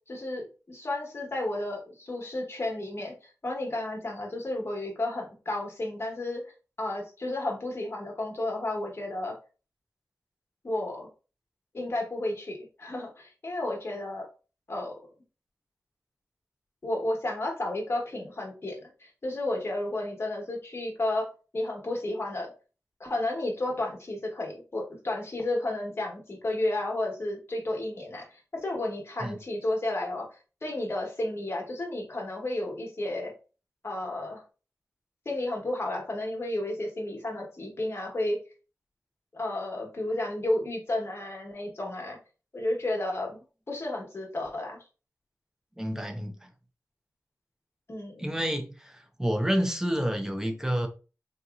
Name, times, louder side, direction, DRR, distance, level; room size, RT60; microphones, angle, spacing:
voice 1, 0.1-6.4 6.8-9.4 10.6-11.1 11.7-14.3 14.7-14.9 16.8-22.5 23.0-30.3 30.6-33.3 33.8-34.4 35.2-38.4 39.3-42.2 42.5-43.4 43.7-44.8 47.9-48.2, left 1 dB, 45° left, 1.1 m, -32 dB
voice 2, 45.8-46.5 48.2-50.9, equal, 10° right, 0.6 m, -29 dB
3.8 x 2.8 x 2.4 m
wide cardioid pair, 105°, 6 cm